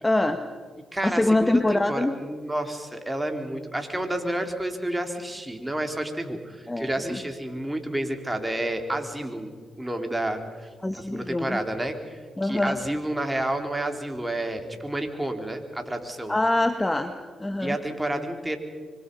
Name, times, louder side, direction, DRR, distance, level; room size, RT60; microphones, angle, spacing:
voice 1, 0.0-0.4 1.0-2.1 6.7-7.2 10.8-11.6 12.4-12.8 16.3-17.8, left 2 dB, 15° left, 8 dB, 1.5 m, -24 dB
voice 2, 0.9-9.5 9.8-16.3 17.6-18.6, right 1 dB, 15° right, 5 dB, 4.0 m, -30 dB
25.5 x 25.0 x 5.6 m, 1.5 s
supercardioid pair, 55°, 0 cm